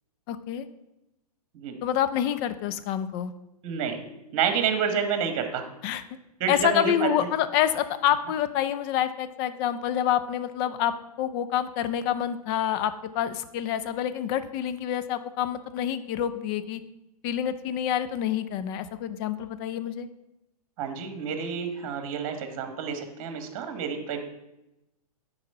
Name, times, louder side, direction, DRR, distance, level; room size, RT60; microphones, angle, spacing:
voice 1, 0.3-0.7 1.8-3.3 5.8-6.0 6.5-16.8 17.2-20.1, left 10 dB, 35° left, 12 dB, 0.6 m, -27 dB
voice 2, 3.6-4.0 4.3-5.7 6.4-7.3 20.8-24.2, right 6 dB, 40° right, 7 dB, 1.3 m, -29 dB
9.6 x 4.1 x 5.5 m, 0.93 s
hypercardioid pair, 115°, 20 cm